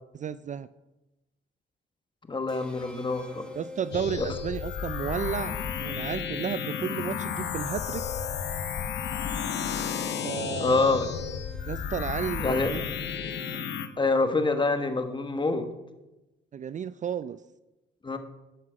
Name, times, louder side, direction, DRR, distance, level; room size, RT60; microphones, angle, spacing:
voice 1, 0.1-0.7 3.6-8.0 10.2-10.9 11.7-12.9 16.5-17.4, right 8 dB, 40° right, 15 dB, 0.4 m, -33 dB
voice 2, 2.3-3.4 10.6-11.1 12.4-12.7 14.0-15.7 18.0-18.2, left 3 dB, 25° left, 8 dB, 1.3 m, -26 dB
sound 1, 2.5-13.9, left 3 dB, 5° left, 2.3 m, -44 dB
sound 2, 3.9-13.9, left 7 dB, 60° left, 1.0 m, -33 dB
12.5 x 5.7 x 6.4 m, 1.0 s
cardioid pair, 90°, 20 cm